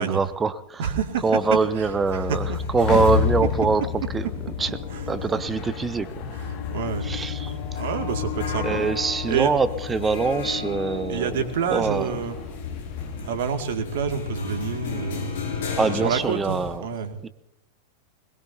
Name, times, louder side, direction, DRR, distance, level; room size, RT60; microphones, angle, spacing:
voice 1, 0.0-0.9 1.2-3.9 4.1-4.7 5.1-6.3 7.0-7.8 8.6-11.4 11.7-12.2 15.8-16.8 17.2-17.3, right 4 dB, 15° right, 15 dB, 0.8 m, -24 dB
voice 2, 0.8-1.2 1.8-1.9 2.1-2.6 4.9-5.0 6.3-7.1 7.8-8.9 9.3-9.5 11.1-12.4 13.2-15.3 15.9-17.2, right 7 dB, 55° right, 6 dB, 2.2 m, -28 dB
sound 1, 0.9-16.8, left 6 dB, 55° left, 6.2 m, -31 dB
sound 2, 0.9-13.4, left 6 dB, 40° left, 2.0 m, -38 dB
22.5 x 21.0 x 2.8 m, 0.84 s
figure-of-eight pair, 90°, 0 cm